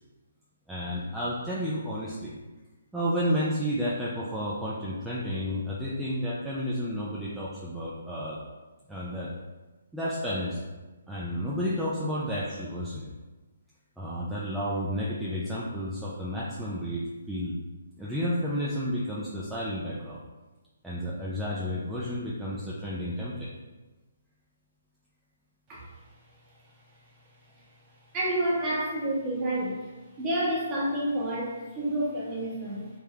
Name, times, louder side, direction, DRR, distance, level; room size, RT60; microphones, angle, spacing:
voice 1, 0.7-2.3 2.9-8.4 8.9-9.3 9.9-10.7 11.1-13.1 14.0-17.0 17.3-17.6 18.0-20.2 20.8-23.5, equal, 5° right, -8 dB, 0.5 m, -31 dB
voice 2, 28.1-29.8 30.2-32.9, right 1 dB, 20° right, -5 dB, 1.2 m, -29 dB
3.4 x 3.4 x 3.3 m, 1.2 s
hypercardioid pair, 150°, 0 cm